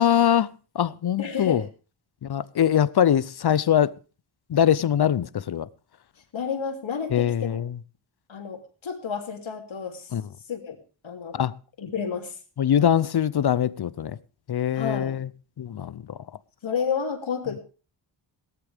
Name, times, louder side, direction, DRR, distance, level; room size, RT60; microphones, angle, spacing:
voice 1, 0.0-1.6 2.2-3.9 4.5-5.7 7.1-7.8 10.1-10.2 11.3-11.5 12.6-14.2 14.5-15.3 15.6-16.2, left 9 dB, 55° left, 0.6 m, -23 dB
voice 2, 1.2-1.7 6.3-7.6 8.3-10.1 10.5-10.8 11.0-11.4 11.8-12.3 14.7-15.2 16.6-17.6, left 6 dB, 75° left, 3.1 m, -30 dB
17.5 x 13.0 x 3.5 m
wide cardioid pair, 110°, 47 cm